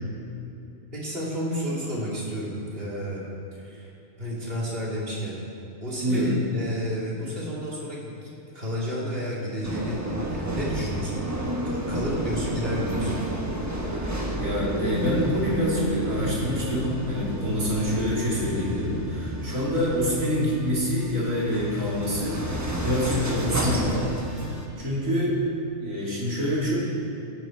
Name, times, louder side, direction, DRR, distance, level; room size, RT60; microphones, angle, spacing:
voice 1, 0.9-3.2 3.5-3.9 4.2-5.3 5.8-8.3 8.5-11.3 11.7-13.2, equal, 45° right, -5 dB, 2.9 m, -31 dB
voice 2, 6.0-6.3 13.8-14.1 14.4-25.4 25.8-26.8, equal, 75° right, -6 dB, 3.5 m, -26 dB
Int subway train, 9.6-24.6, right 1 dB, 15° right, 1.1 m, -31 dB
17.5 x 9.1 x 4.5 m, 2.8 s
omnidirectional pair, 1.4 m